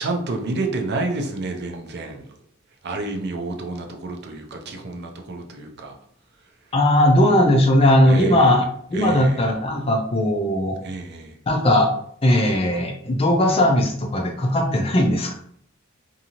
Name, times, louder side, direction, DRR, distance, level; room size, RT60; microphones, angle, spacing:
voice 1, 0.0-2.2 2.8-5.9 8.1-8.5 8.9-9.4 10.8-11.3, right 2 dB, 55° right, 4 dB, 0.5 m, -29 dB
voice 2, 6.7-8.6 8.9-10.8 11.5-11.9 12.2-15.3, left 1 dB, 30° left, 3 dB, 0.5 m, -18 dB
2.7 x 2.6 x 2.8 m, 0.64 s
head